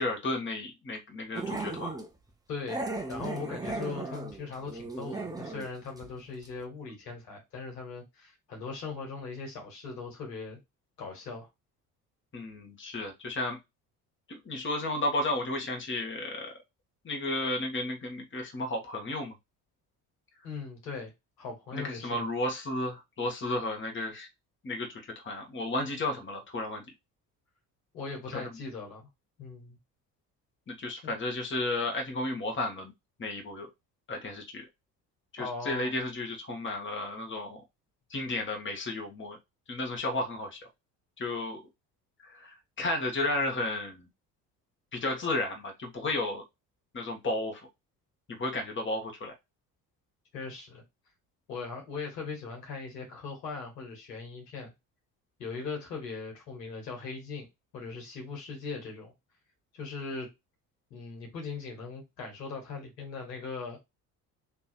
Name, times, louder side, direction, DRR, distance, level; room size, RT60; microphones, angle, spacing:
voice 1, 0.0-2.0 12.3-13.6 14.3-16.5 17.0-19.3 21.7-24.3 24.6-26.8 28.3-28.5 30.7-32.9 33.2-33.7 34.1-34.6 35.3-37.6 38.1-39.4 39.7-40.6 41.2-41.6 42.2-44.1 44.9-46.4 46.9-47.7 48.3-49.3, left 2 dB, 25° left, 1.6 m, -33 dB
Growling, 1.3-2.1 2.7-5.7 6.0-6.1 6.4-6.5, right 2 dB, 10° right, 0.9 m, -36 dB
voice 2, 2.5-10.6 11.0-11.5 20.4-21.1 21.4-22.2 27.9-29.1 29.4-29.8 31.0-31.1 35.4-36.0 50.3-50.8 51.5-54.7 55.4-57.5 57.7-59.1 59.7-60.3 60.9-63.8, left 4 dB, 75° left, 1.9 m, -39 dB
3.5 x 3.0 x 4.4 m
figure-of-eight pair, 55°, 49 cm